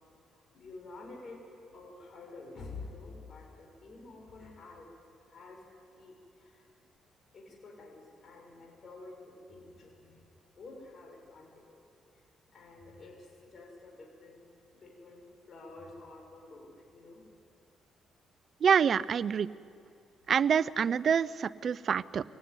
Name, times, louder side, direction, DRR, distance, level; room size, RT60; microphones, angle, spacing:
voice 1, 0.3-4.9 5.3-5.7 5.9-6.7 7.3-10.2 10.6-11.8 12.1-12.2 12.5-14.4 14.7-17.3, left 3 dB, 50° left, 1 dB, 6.3 m, -49 dB
voice 2, 18.6-19.5 20.3-22.2, right 7 dB, 55° right, 17 dB, 0.6 m, -26 dB
24.5 x 17.5 x 9.7 m, 2.4 s
cardioid pair, 90°, 0 cm